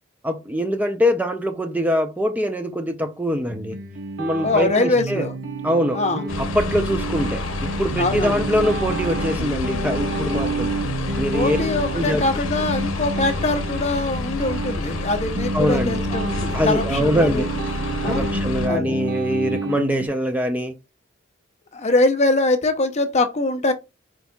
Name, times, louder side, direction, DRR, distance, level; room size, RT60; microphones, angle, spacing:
voice 1, 0.2-3.8 4.2-5.3 5.6-6.0 6.4-10.8 11.2-11.6 11.9-12.2 15.5-16.0 16.5-17.5 18.0-20.8, equal, 10° right, 0.4 m, -23 dB
sound 1, 3.5-20.1, right 2 dB, 65° right, 0.8 m, -29 dB
voice 2, 4.4-5.3 5.9-6.3 8.0-8.4 11.3-17.4 18.0-18.3 18.6-19.0 21.7-23.7, left 2 dB, 35° left, 0.6 m, -23 dB
sound 2, 6.3-18.7, left 3 dB, 90° left, 0.7 m, -29 dB
4.6 x 3.9 x 2.2 m
head